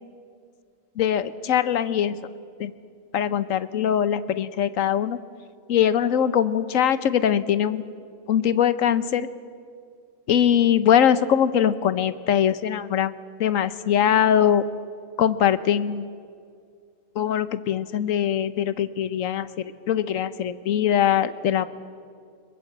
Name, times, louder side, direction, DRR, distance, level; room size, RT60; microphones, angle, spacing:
voice 1, 1.0-2.2 2.6-2.7 3.1-5.2 5.7-7.9 8.3-9.3 10.3-13.1 13.4-14.7 15.2-16.0 17.2-21.7, left 9 dB, 80° left, 14 dB, 1.2 m, -22 dB
22.5 x 21.0 x 7.9 m, 2.2 s
omnidirectional pair, 1.4 m